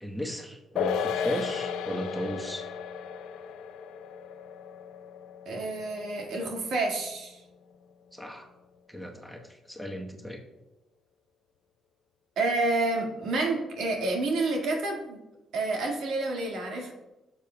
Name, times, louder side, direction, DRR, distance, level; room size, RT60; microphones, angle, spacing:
voice 1, 0.0-2.7 8.1-8.5 8.9-9.4 9.7-10.4, equal, ahead, 0 dB, 1.1 m, -35 dB
sound 1, 0.8-7.4 7.7-7.8, left 7 dB, 90° left, 0.5 m, -35 dB
voice 2, 5.5-7.4 12.4-15.2 15.5-16.9, right 2 dB, 75° right, 0 dB, 1.9 m, -29 dB
12.0 x 7.0 x 2.3 m, 0.98 s
cardioid pair, 90°, 0 cm